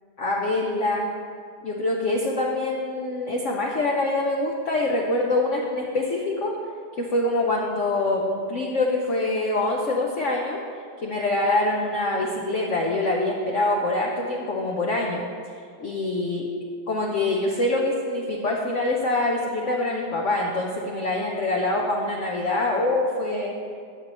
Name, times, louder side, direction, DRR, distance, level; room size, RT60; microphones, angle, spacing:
voice 1, 0.2-1.1 1.6-6.6 7.0-10.6 11.0-15.2 15.8-16.5 16.9-23.6, left 2 dB, 55° left, -1 dB, 0.8 m, -25 dB
12.5 x 7.6 x 3.0 m, 2.3 s
omnidirectional pair, 2.0 m